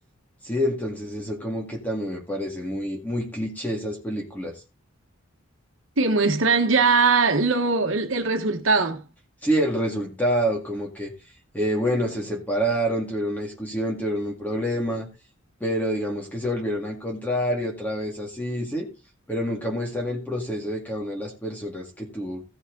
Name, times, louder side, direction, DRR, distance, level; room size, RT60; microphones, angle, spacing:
voice 1, 0.4-4.6 9.4-11.1 11.5-15.1 15.6-18.9 19.3-22.4, equal, 10° left, 2.1 m, -27 dB
voice 2, 6.0-9.0, right 4 dB, 70° right, 1.4 m, -21 dB
15.5 x 6.2 x 3.9 m
head